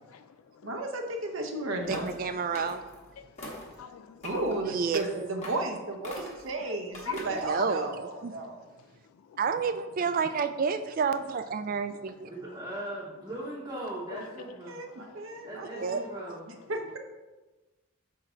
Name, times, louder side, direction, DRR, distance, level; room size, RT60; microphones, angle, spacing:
voice 1, 0.6-2.3 4.2-8.6 14.4-16.1 16.7-17.0, right 2 dB, 70° right, 3 dB, 0.8 m, -34 dB
sound 1, 1.8-2.2 2.5-3.0 3.4-3.7 4.2-4.6 4.9-5.1 5.4-5.7 6.0-6.5 6.9-7.5, left 1 dB, 30° left, 1.3 m, -41 dB
voice 2, 1.9-2.8 4.7-5.0 7.4-8.3 9.4-12.3 15.8-16.0, right 5 dB, 40° right, 10 dB, 0.3 m, -30 dB
voice 3, 3.2-4.4 6.7-6.8 7.1-7.2 7.5-7.7 8.4-8.5 9.3-9.4 11.7-11.8 14.1-14.3 14.9-15.5, left 8 dB, 85° left, 10 dB, 0.3 m, -43 dB
voice 4, 12.3-14.8 15.4-16.4, right 1 dB, 20° right, -7 dB, 0.9 m, -39 dB
5.9 x 4.7 x 4.4 m, 1.2 s
head